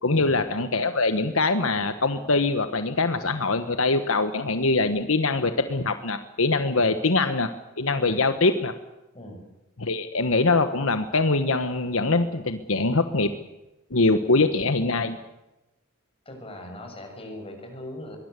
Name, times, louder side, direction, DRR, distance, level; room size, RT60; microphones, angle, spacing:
voice 1, 0.0-7.5 7.8-8.7 9.8-13.3 13.9-15.2, left 3 dB, 75° left, 9 dB, 1.4 m, -23 dB
voice 2, 16.3-18.2, left 1 dB, 30° left, 3 dB, 7.0 m, -40 dB
23.5 x 19.5 x 8.4 m, 0.98 s
head